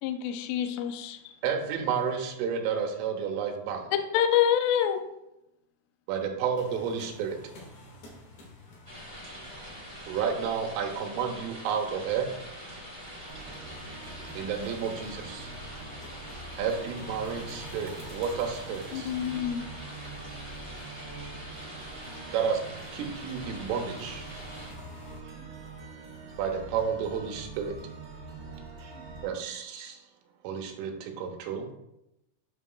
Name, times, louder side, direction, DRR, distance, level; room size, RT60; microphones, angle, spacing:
voice 1, 0.0-1.4 4.1-5.0 18.9-19.6, left 10 dB, 90° left, 6 dB, 2.4 m, -26 dB
voice 2, 1.4-3.9 6.1-7.4 10.1-12.3 14.4-15.5 16.6-19.1 22.3-22.6 22.9-24.3 26.4-27.7 29.2-30.0 30.4-31.8, right 7 dB, 85° right, 2 dB, 3.3 m, -31 dB
sound 1, 6.5-25.2, left 2 dB, 60° left, 3.2 m, -51 dB
sound 2, 8.8-24.7, equal, 40° left, 0.4 m, -44 dB
sound 3, 13.3-29.3, right 4 dB, 45° right, 1.3 m, -45 dB
voice 3, 13.7-14.1 16.6-16.9 25.2-25.8 28.8-29.3, right 3 dB, 70° right, -2 dB, 1.9 m, -56 dB
9.0 x 6.2 x 2.3 m, 0.87 s
omnidirectional pair, 5.7 m